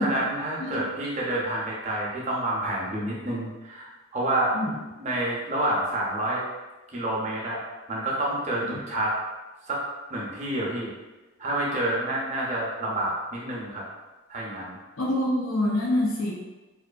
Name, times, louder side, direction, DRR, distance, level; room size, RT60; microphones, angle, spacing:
voice 1, 0.0-4.5 5.0-6.5 6.9-7.6 7.9-9.1 9.7-9.8 10.1-10.9 11.4-13.8 14.3-14.8, right 1 dB, 35° right, -4 dB, 0.5 m, -28 dB
voice 2, 15.0-16.3, left 1 dB, 85° left, -6 dB, 0.7 m, -25 dB
2.5 x 2.4 x 2.3 m, 1.2 s
head